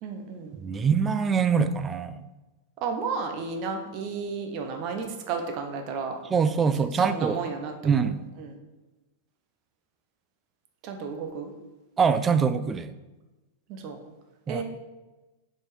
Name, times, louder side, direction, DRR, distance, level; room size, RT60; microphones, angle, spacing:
voice 1, 0.0-0.6 2.8-6.2 6.9-8.1 8.4-8.6 10.8-11.5 13.7-14.0 14.5-14.6, right 5 dB, 40° right, 4 dB, 1.1 m, -33 dB
voice 2, 0.6-2.2 6.3-7.4 7.8-8.2 12.0-12.9 14.5-14.6, right 6 dB, 15° right, 12 dB, 0.4 m, -24 dB
7.2 x 4.5 x 5.1 m, 1.1 s
supercardioid pair, 160°, 0 cm